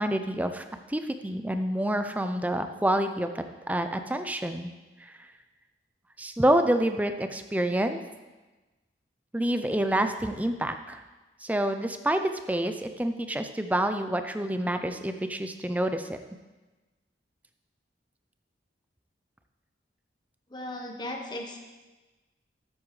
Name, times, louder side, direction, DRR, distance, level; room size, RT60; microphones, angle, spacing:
voice 1, 0.0-4.7 6.2-8.0 9.3-11.0 11.4-12.2 12.5-16.2, right 1 dB, 10° right, 8 dB, 0.5 m, -28 dB
voice 2, 20.5-21.6, left 1 dB, 25° left, 2 dB, 1.0 m, -36 dB
12.5 x 8.2 x 3.2 m, 1.2 s
head